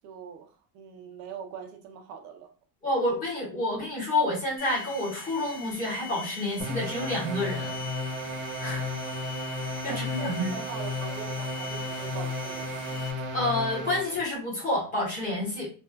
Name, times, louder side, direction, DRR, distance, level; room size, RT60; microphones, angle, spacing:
voice 1, 0.0-2.5 9.8-13.0, right 7 dB, 40° right, 4 dB, 0.6 m, -42 dB
voice 2, 2.8-7.8 8.6-8.9 9.6-10.6 13.3-15.7, left 1 dB, 20° left, -6 dB, 1.2 m, -29 dB
sound 1, 4.6-13.1, left 5 dB, 40° left, 1.1 m, -42 dB
sound 2, 6.6-14.2, left 1 dB, 85° right, 1.1 m, -34 dB
3.3 x 2.4 x 2.2 m, 0.37 s
cardioid pair, 180°, 41 cm